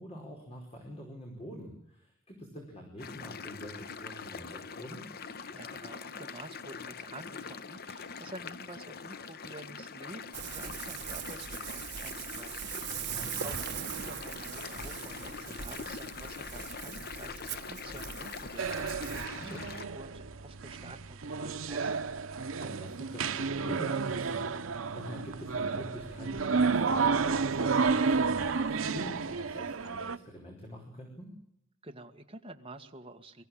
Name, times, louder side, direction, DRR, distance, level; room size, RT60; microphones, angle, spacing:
voice 1, 0.0-5.1 13.0-13.5 19.3-19.6 22.6-31.4, equal, 30° left, 0 dB, 5.0 m, -45 dB
sound 1, 3.0-19.9, left 5 dB, 50° left, 0.9 m, -43 dB
voice 2, 5.5-19.6 19.9-22.1 31.8-33.4, right 2 dB, 30° right, 4 dB, 1.8 m, -49 dB
Ocean, 10.3-19.3, right 8 dB, 60° right, 1.3 m, -41 dB
sound 2, 18.6-30.2, right 4 dB, 90° right, 0.9 m, -31 dB
23.5 x 15.5 x 8.8 m, 0.79 s
head